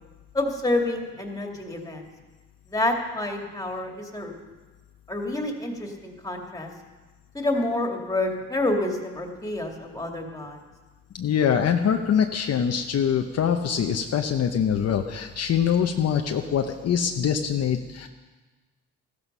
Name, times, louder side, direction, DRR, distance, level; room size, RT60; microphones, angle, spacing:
voice 1, 0.3-2.1 2.7-4.3 5.1-6.7 7.3-10.6, left 2 dB, 10° left, 2 dB, 2.4 m, -28 dB
voice 2, 11.1-18.1, left 8 dB, 55° left, 4 dB, 0.9 m, -24 dB
15.0 x 13.5 x 5.5 m, 1.3 s
cardioid pair, 90°, 30 cm